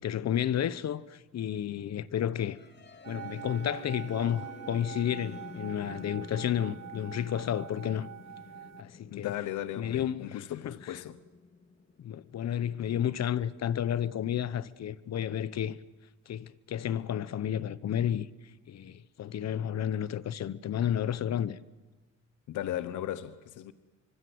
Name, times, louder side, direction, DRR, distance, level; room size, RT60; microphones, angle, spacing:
voice 1, 0.0-2.6 3.1-8.1 8.8-9.3 9.8-11.0 12.0-15.8 16.3-18.3 18.7-21.6, left 10 dB, 60° left, 1.1 m, -31 dB
sound 1, 2.4-14.3, left 4 dB, 35° left, 2.6 m, -51 dB
sound 2, 3.0-8.8, right 10 dB, 60° right, 0.8 m, -44 dB
voice 2, 9.1-11.2 22.5-23.7, left 12 dB, 80° left, 1.1 m, -36 dB
25.0 x 24.0 x 8.0 m
cardioid pair, 90°, 30 cm